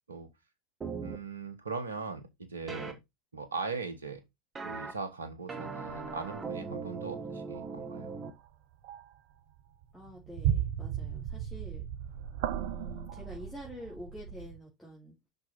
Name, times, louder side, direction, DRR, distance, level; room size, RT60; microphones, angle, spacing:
sound 1, 0.8-1.2 2.7-2.9 4.6-4.9 5.5-8.3, right 4 dB, 25° right, 1.5 m, -39 dB
voice 1, 1.0-3.0 3.3-4.2 4.6-8.2, right 4 dB, 85° right, 1.4 m, -39 dB
sound 2, 5.9-6.4 7.5-7.7 8.2-8.5 8.8-9.2 9.6-14.6, right 10 dB, 60° right, 0.8 m, -35 dB
voice 2, 9.9-11.9 12.5-15.3, equal, ahead, 3.2 m, -47 dB
6.1 x 5.3 x 4.2 m
figure-of-eight pair, 85°, 0 cm